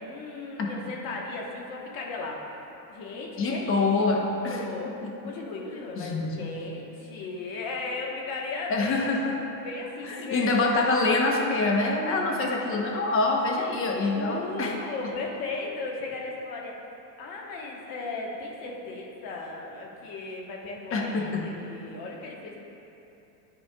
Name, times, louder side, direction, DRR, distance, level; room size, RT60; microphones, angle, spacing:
voice 1, 0.0-2.4 2.9-3.9 4.5-4.9 5.2-9.2 9.6-10.6 13.6-13.7 14.0-16.7 17.2-22.7, left 3 dB, 45° left, -1 dB, 1.3 m, -36 dB
voice 2, 3.4-4.6 5.0-5.1 5.9-6.5 8.7-9.3 10.1-14.8 20.9-21.5, left 3 dB, 25° left, 0 dB, 0.9 m, -25 dB
12.0 x 4.3 x 2.3 m, 2.9 s
hypercardioid pair, 115°, 50 cm